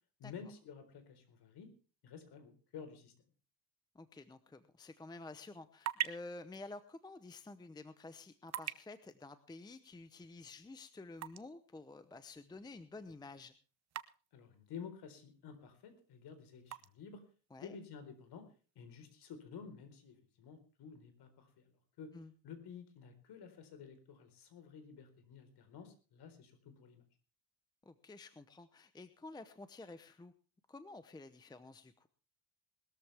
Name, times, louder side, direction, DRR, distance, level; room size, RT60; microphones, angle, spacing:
voice 1, 0.2-1.7 2.0-3.1 14.3-17.2 17.6-18.5 18.8-21.6 22.0-22.1 22.4-27.0, left 6 dB, 50° left, 8 dB, 4.4 m, -52 dB
voice 2, 3.9-13.5 17.5-17.8 22.1-22.3 27.8-30.3 30.7-32.1, left 3 dB, 10° left, 12 dB, 0.8 m, -51 dB
sound 1, 5.3-19.2, right 10 dB, 35° right, 0.8 m, -49 dB
20.5 x 13.5 x 3.5 m, 0.36 s
cardioid pair, 140°, 48 cm